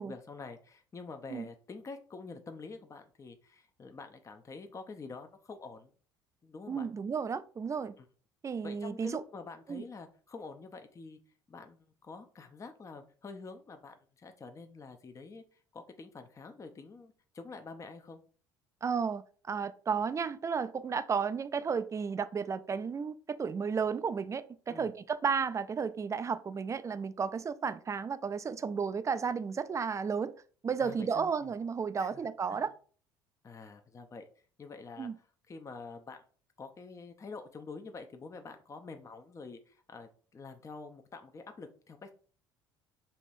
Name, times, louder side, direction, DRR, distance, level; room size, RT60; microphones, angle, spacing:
voice 1, 0.0-5.9 6.4-6.9 8.0-8.1 8.6-11.2 11.5-18.2 24.7-24.9 30.8-31.5 32.0-32.2 32.5-32.7 33.4-34.2 34.6-35.1 35.5-36.2 36.6-42.1, left 4 dB, 25° left, 0.6 m, -47 dB
voice 2, 6.7-7.9 8.4-9.2 9.7-9.8 18.8-30.3 30.6-32.7 35.0-35.1, right 6 dB, 25° right, 0.4 m, -33 dB
5.5 x 3.0 x 2.6 m
figure-of-eight pair, 60°, 13 cm